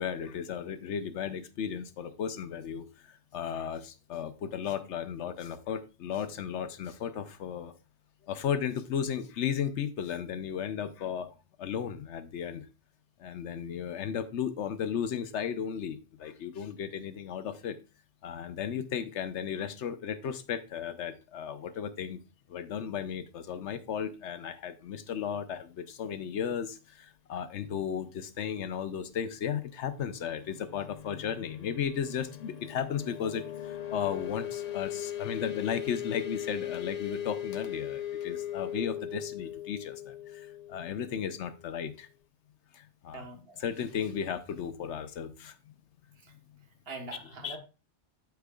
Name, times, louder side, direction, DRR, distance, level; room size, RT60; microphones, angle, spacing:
voice 1, 0.0-7.7 8.3-11.3 11.6-12.7 13.2-17.8 18.2-22.2 22.5-42.1 42.7-43.2 43.6-45.5 47.4-47.6, left 8 dB, 80° left, 11 dB, 1.0 m, -35 dB
sound 1, 29.3-41.8, left 11 dB, 50° left, 0.5 m, -39 dB
voice 2, 43.1-43.6 46.2-46.3 46.9-47.6, right 3 dB, 60° right, 4 dB, 1.5 m, -43 dB
13.0 x 4.6 x 2.3 m, 0.31 s
omnidirectional pair, 1.2 m